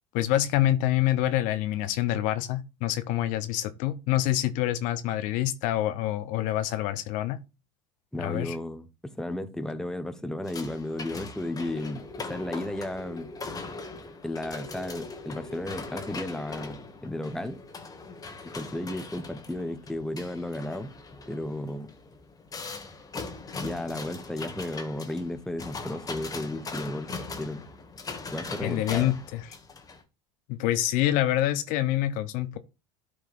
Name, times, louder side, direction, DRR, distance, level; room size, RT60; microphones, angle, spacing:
voice 1, 0.1-7.4 8.2-8.5 28.6-29.5 30.5-32.6, left 14 dB, 60° left, 0.7 m, -26 dB
voice 2, 8.1-8.9 9.2-13.3 14.2-17.6 18.4-20.9 21.3-21.9 23.6-27.1 27.4-27.6 28.3-29.1, left 1 dB, 5° left, 1.0 m, -34 dB
sound 1, 10.4-30.0, left 3 dB, 25° left, 1.5 m, -40 dB
12.5 x 4.8 x 2.5 m
hypercardioid pair, 85°, 15 cm